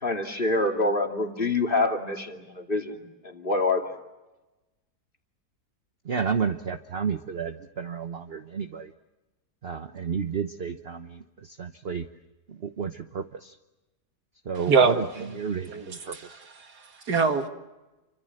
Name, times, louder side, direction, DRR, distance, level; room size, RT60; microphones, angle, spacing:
voice 1, 0.0-3.9, left 2 dB, 35° left, 3 dB, 2.8 m, -26 dB
voice 2, 6.0-8.9 9.6-12.1 12.5-13.6 14.4-15.0 15.3-16.3, right 6 dB, 45° right, 8 dB, 1.1 m, -31 dB
voice 3, 14.7-15.0 15.7-17.5, right 5 dB, 80° right, 6 dB, 2.5 m, -24 dB
29.0 x 25.5 x 7.8 m, 1.1 s
omnidirectional pair, 1.7 m